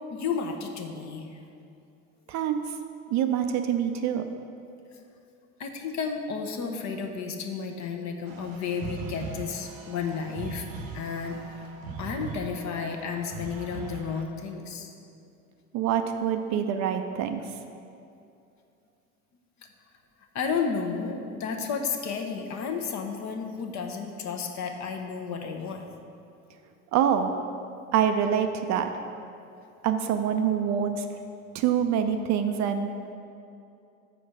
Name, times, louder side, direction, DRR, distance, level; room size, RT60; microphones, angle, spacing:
voice 1, 0.1-1.4 5.6-10.7 10.9-11.4 12.0-14.9 20.3-25.8, left 5 dB, 40° left, 4 dB, 0.9 m, -32 dB
voice 2, 2.3-2.6 3.1-4.3 15.7-17.4 26.9-27.3 27.9-28.9 29.8-31.1 31.5-32.9, right 8 dB, 45° right, 7 dB, 0.5 m, -25 dB
sound 1, 8.3-14.2, right 4 dB, 70° right, 0.9 m, -40 dB
6.4 x 4.6 x 6.4 m, 2.6 s
figure-of-eight pair, 65°, 42 cm